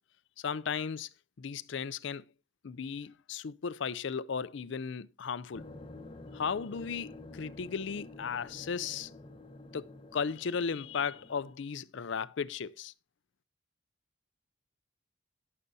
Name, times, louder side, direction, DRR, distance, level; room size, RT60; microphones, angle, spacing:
voice 1, 0.4-1.1 1.4-2.2 2.6-5.7 6.3-9.1 9.7-12.9, left 6 dB, 65° left, 0.4 m, -35 dB
sound 1, 5.5-11.5, left 2 dB, 25° left, 0.9 m, -49 dB
19.0 x 6.7 x 2.6 m
head